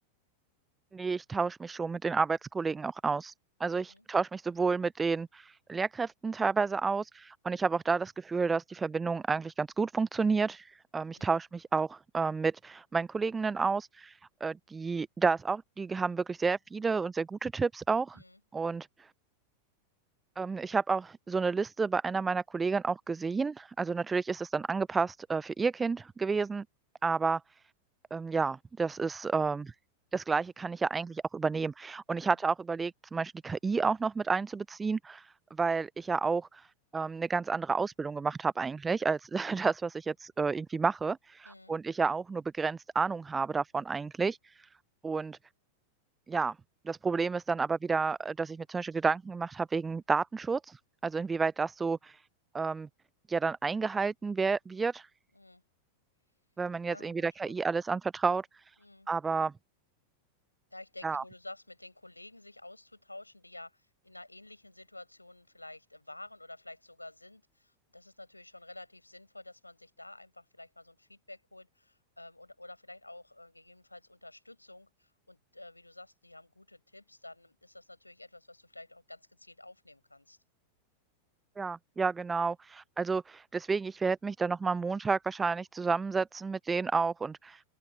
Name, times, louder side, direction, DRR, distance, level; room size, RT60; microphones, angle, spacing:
voice 1, 0.9-3.3 3.6-18.2 18.5-19.1 20.4-26.6 27.0-27.4 28.1-29.7 30.1-44.7 45.0-45.4 46.3-46.5 46.9-52.2 52.5-52.9 53.3-55.1 56.6-58.8 59.1-59.5 61.0-61.2 81.6-87.6, right 4 dB, 15° right, 0.7 m, -31 dB
voice 2, 3.7-4.0 11.2-11.4 18.1-18.4 41.4-41.7 55.3-55.6 56.9-57.5 58.8-59.1 60.7-80.4, left 2 dB, 85° left, 7.0 m, -51 dB
open air
figure-of-eight pair, 90°, 0 cm